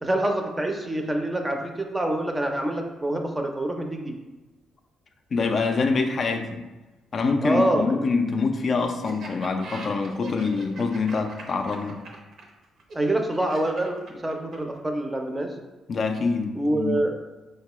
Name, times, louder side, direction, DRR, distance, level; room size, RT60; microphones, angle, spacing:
voice 1, 0.0-4.2 7.4-8.0 12.9-15.5 16.5-17.2, right 1 dB, 15° right, 3 dB, 0.5 m, -26 dB
voice 2, 5.3-6.6 7.1-12.0 15.9-17.0, left 4 dB, 50° left, 4 dB, 0.3 m, -25 dB
Laughter, 9.0-14.8, right 2 dB, 65° right, 0.7 m, -41 dB
4.3 x 2.2 x 3.0 m, 1.1 s
cardioid pair, 90°, 0 cm